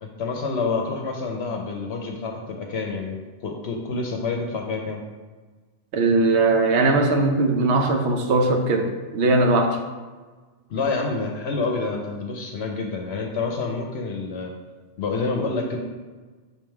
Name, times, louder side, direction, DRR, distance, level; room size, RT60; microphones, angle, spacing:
voice 1, 0.0-5.0 10.7-14.5 15.0-15.8, left 4 dB, 70° left, 2 dB, 0.9 m, -28 dB
voice 2, 5.9-9.8, right 2 dB, 75° right, 4 dB, 1.0 m, -20 dB
5.8 x 3.6 x 4.5 m, 1.3 s
omnidirectional pair, 1.2 m